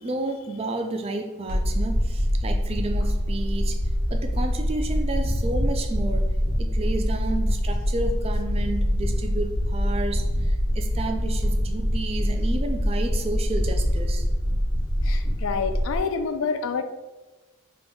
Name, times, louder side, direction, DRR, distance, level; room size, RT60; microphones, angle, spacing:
voice 1, 0.0-3.8 4.1-6.3 6.6-10.3 10.8-14.2, right 2 dB, 25° right, 5 dB, 0.3 m, -31 dB
sound 1, 1.5-16.0, equal, 45° right, 1.3 m, -24 dB
voice 2, 15.0-16.8, left 5 dB, 65° left, 9 dB, 0.3 m, -27 dB
3.7 x 2.3 x 3.8 m, 1.2 s
head